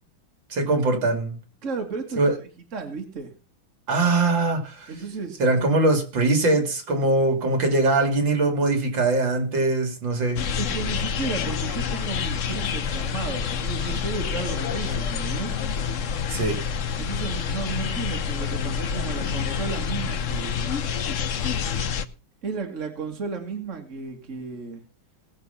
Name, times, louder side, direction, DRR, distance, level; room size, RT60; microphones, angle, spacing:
voice 1, 0.5-1.4 2.2-2.3 3.9-4.9 5.4-10.4 16.3-16.6, right 2 dB, 65° right, 3.1 m, -22 dB
voice 2, 1.6-2.2 2.7-3.3 4.9-5.4 10.6-15.6 17.0-20.7 22.4-24.8, right 4 dB, 35° right, 2.3 m, -33 dB
sound 1, 10.4-22.1, left 7 dB, 55° left, 0.9 m, -28 dB
19.0 x 6.8 x 5.6 m
omnidirectional pair, 2.2 m